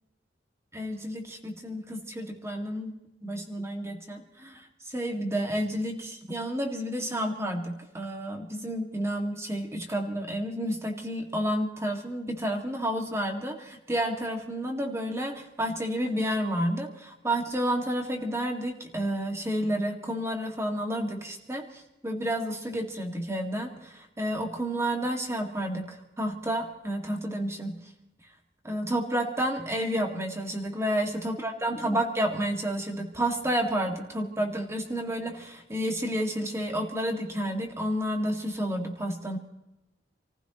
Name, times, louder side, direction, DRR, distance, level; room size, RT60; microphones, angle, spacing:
voice 1, 0.7-3.0 3.2-27.8 28.6-39.4, equal, 15° right, 3 dB, 2.1 m, -30 dB
28.0 x 15.0 x 3.1 m, 0.94 s
head